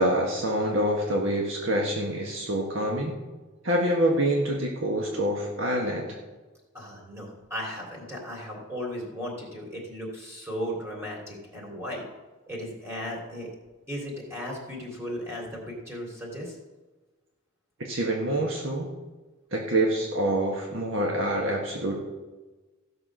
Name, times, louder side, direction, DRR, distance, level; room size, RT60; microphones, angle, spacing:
voice 1, 0.0-3.2 3.6-6.2 17.8-18.9 19.5-21.9, right 1 dB, 65° right, -1 dB, 1.5 m, -26 dB
voice 2, 6.7-12.0 12.5-13.5 13.9-16.6, equal, 15° right, -2 dB, 3.2 m, -36 dB
15.5 x 6.1 x 6.2 m, 1.2 s
head